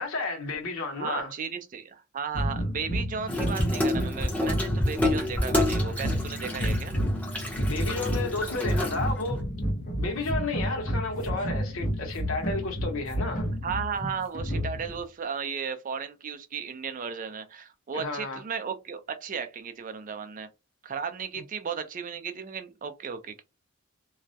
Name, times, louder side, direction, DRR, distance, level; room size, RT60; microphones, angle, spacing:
voice 1, 0.0-1.3 7.6-9.5 10.0-13.5 17.9-18.4, left 3 dB, 85° left, 0.8 m, -32 dB
voice 2, 1.0-7.0 13.6-20.5 20.8-23.4, right 6 dB, 40° right, 0.4 m, -35 dB
sound 1, 2.3-15.0, equal, 45° left, 0.7 m, -30 dB
Water tap faucet / Sink (filling or washing), 3.3-9.4, left 1 dB, 5° left, 0.6 m, -29 dB
2.3 x 2.0 x 2.6 m
head